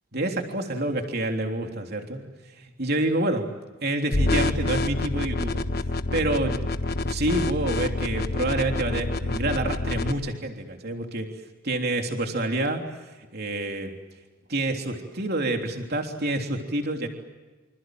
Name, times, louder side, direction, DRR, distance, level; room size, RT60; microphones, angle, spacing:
voice 1, 0.1-2.2 2.6-3.5 3.8-5.6 6.1-6.6 7.0-11.3 11.6-12.8 13.3-14.0 14.5-17.1, right 2 dB, 50° right, 3 dB, 3.4 m, -27 dB
sound 1, 4.1-10.1, left 2 dB, 50° left, 1.3 m, -27 dB
28.0 x 27.0 x 7.8 m, 1.2 s
head